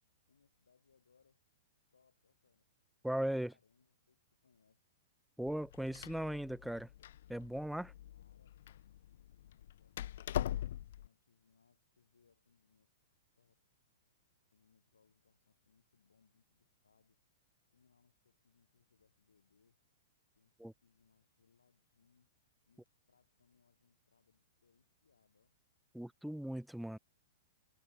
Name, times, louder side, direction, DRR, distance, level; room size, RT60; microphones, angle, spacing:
voice 1, 0.3-1.4 1.9-2.7 3.2-5.0 8.1-10.2 10.7-12.9 13.4-13.8 14.5-17.2 17.7-19.8 20.4-22.3 22.7-25.6, left 5 dB, 70° left, 7.1 m, -74 dB
voice 2, 3.0-3.5 5.4-6.9 7.3-7.9 20.6-20.7 25.9-27.0, right 1 dB, ahead, 0.6 m, -38 dB
Door, 5.5-11.1, left 12 dB, 55° left, 0.6 m, -42 dB
figure-of-eight pair, 105°, 0 cm